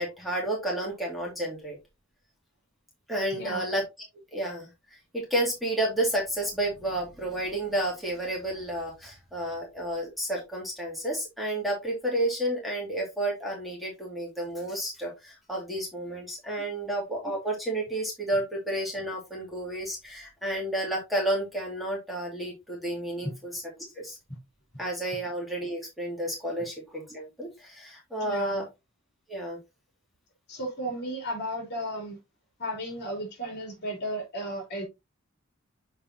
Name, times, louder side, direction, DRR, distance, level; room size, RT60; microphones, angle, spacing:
voice 1, 0.0-1.8 3.1-3.8 4.3-4.7 5.1-23.6 24.0-24.2 24.8-28.6 29.3-29.6, right 1 dB, ahead, 2.2 m, -31 dB
voice 2, 3.3-3.7 16.6-16.7 23.2-23.3 28.2-28.7 30.5-32.2 32.6-34.8, equal, 50° left, 3.3 m, -34 dB
7.2 x 5.2 x 2.8 m
head